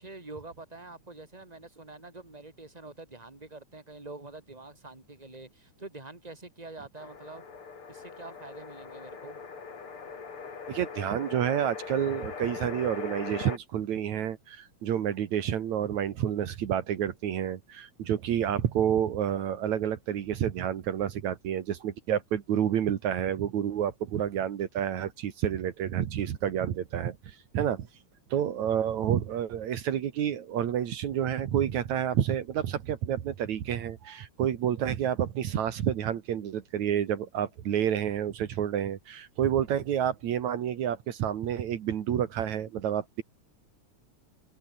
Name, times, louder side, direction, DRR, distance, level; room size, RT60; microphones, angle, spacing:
voice 1, 0.0-7.4 7.9-9.5, right 3 dB, 10° right, 4.0 m, -46 dB
sound 1, 6.9-13.6, left 5 dB, 45° left, 3.8 m, -41 dB
voice 2, 10.7-27.9 28.3-43.2, right 9 dB, 75° right, 2.9 m, -29 dB
omnidirectional pair, 3.3 m